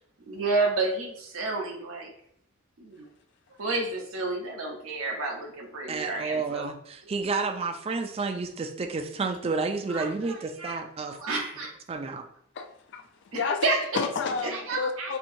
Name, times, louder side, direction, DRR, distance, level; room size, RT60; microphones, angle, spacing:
voice 1, 0.3-2.1 2.8-3.1 3.6-6.7 9.9-10.7 11.0-11.7 13.3-13.8 14.4-15.1, right 3 dB, 75° right, 1 dB, 0.7 m, -30 dB
voice 2, 5.9-11.2 11.9-12.3, right 4 dB, 30° right, 6 dB, 0.3 m, -30 dB
voice 3, 12.6-13.1 13.3-13.6 13.9-15.2, left 5 dB, 55° left, 5 dB, 0.4 m, -30 dB
4.4 x 2.7 x 2.6 m, 0.69 s
head